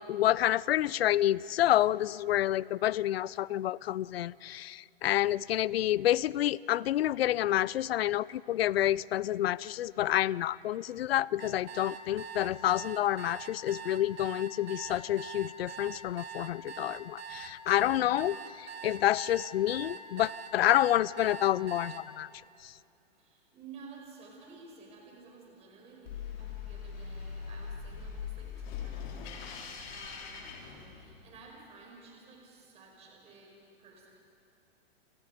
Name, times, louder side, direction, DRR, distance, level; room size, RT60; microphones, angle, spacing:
voice 1, 0.0-22.3, left 13 dB, 80° left, 0.5 m, -28 dB
sound 1, 11.4-22.0, right 7 dB, 80° right, 2.2 m, -43 dB
voice 2, 23.2-29.4 29.9-33.5 33.8-34.1, right 4 dB, 20° right, 5.3 m, -53 dB
sound 2, 26.1-31.4, left 6 dB, 50° left, 3.9 m, -41 dB
29.0 x 26.5 x 5.1 m
hypercardioid pair, 155°, 30 cm